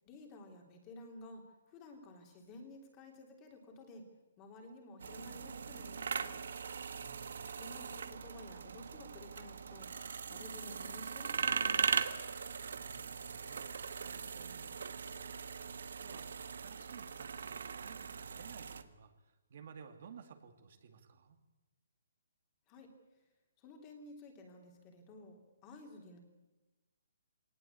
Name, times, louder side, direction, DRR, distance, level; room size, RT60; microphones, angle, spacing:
voice 1, 0.0-4.1 4.4-6.4 7.6-12.0 22.7-22.9 23.6-26.2, left 2 dB, 20° left, 3 dB, 3.2 m, -53 dB
sound 1, 5.0-18.8, right 6 dB, 70° right, 1.4 m, -40 dB
voice 2, 6.9-7.4 12.7-15.0 16.0-21.4, right 6 dB, 45° right, 6 dB, 2.2 m, -56 dB
20.5 x 19.0 x 8.4 m, 1.1 s
hypercardioid pair, 170°, 0 cm